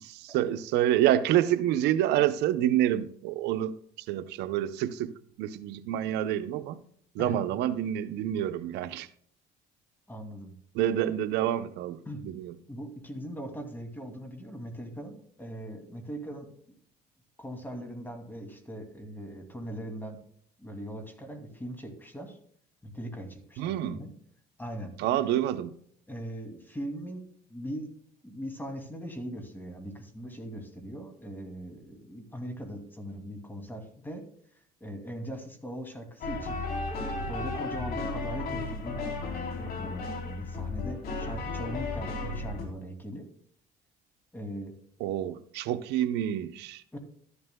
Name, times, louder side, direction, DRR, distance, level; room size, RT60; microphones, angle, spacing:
voice 1, 0.0-6.8 7.1-9.1 10.7-12.0 12.2-12.5 23.6-24.0 25.0-25.7 45.0-46.8, right 12 dB, 90° right, 0.7 m, -28 dB
voice 2, 10.1-10.5 12.1-12.3 12.7-16.5 17.4-20.2 20.6-22.4 22.8-24.1 24.6-24.9 26.1-27.2 27.5-27.9 28.2-34.2 34.8-36.6 37.3-39.0 39.5-43.2 44.3-44.7 46.9-47.0, equal, 10° left, 2.5 m, -40 dB
sound 1, 36.2-42.7, left 3 dB, 65° left, 3.4 m, -34 dB
13.0 x 11.5 x 2.2 m
cardioid pair, 110°, 17 cm